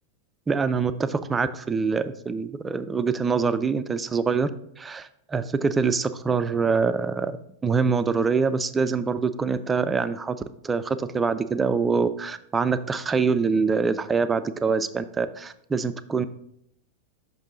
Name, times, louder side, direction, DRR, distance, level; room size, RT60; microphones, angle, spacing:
voice 1, 0.5-4.5 4.8-7.4 7.6-10.4 10.6-16.3, right 5 dB, 15° right, 12 dB, 0.3 m, -24 dB
5.8 x 5.2 x 3.8 m, 0.72 s
figure-of-eight pair, 90°, 0 cm